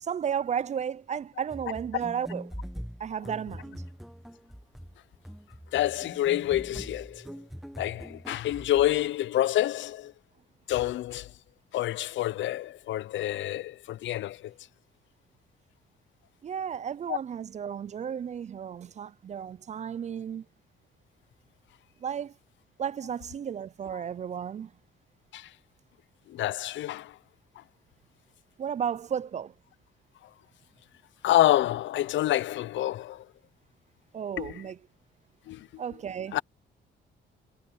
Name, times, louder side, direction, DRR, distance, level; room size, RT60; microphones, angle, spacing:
voice 1, 0.0-2.5 3.0-3.8 16.4-20.5 22.0-22.3 22.8-24.7 28.6-29.5 34.1-34.8 35.8-36.4, right 8 dB, 35° right, 0.4 m, -33 dB
sound 1, 1.5-9.1, equal, ahead, 1.1 m, -43 dB
voice 2, 5.7-7.3 7.8-10.1 10.7-11.3 11.7-14.5 17.1-17.2 25.3-25.5 26.3-27.1 31.2-33.2 34.4-34.5 35.5-35.7 36.3-36.4, left 14 dB, 70° left, 0.5 m, -27 dB
cardioid pair, 90°, 20 cm